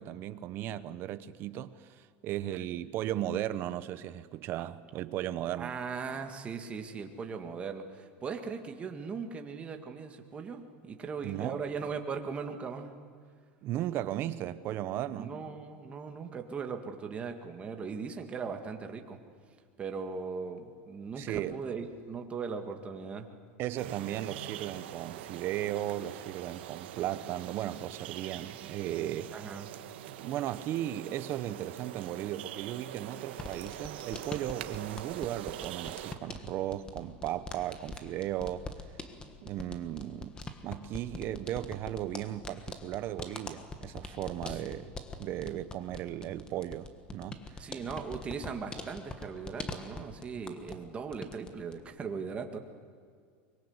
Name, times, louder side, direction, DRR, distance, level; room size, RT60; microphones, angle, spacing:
voice 1, 0.0-5.8 11.2-11.6 13.6-15.3 21.2-21.6 23.6-29.4 30.2-38.7 39.4-40.4 40.6-44.9 45.2-47.7, right 12 dB, 40° right, 1.0 m, -36 dB
voice 2, 5.6-12.9 15.1-19.2 19.8-23.3 29.3-29.7 44.5-44.6 47.6-52.6, right 5 dB, 20° right, 2.0 m, -39 dB
sound 1, 23.8-36.1, right 12 dB, 85° right, 1.4 m, -43 dB
sound 2, 33.3-50.9 51.1-51.8, left 3 dB, 15° left, 1.4 m, -44 dB
24.0 x 22.5 x 8.1 m
supercardioid pair, 150°, 6 cm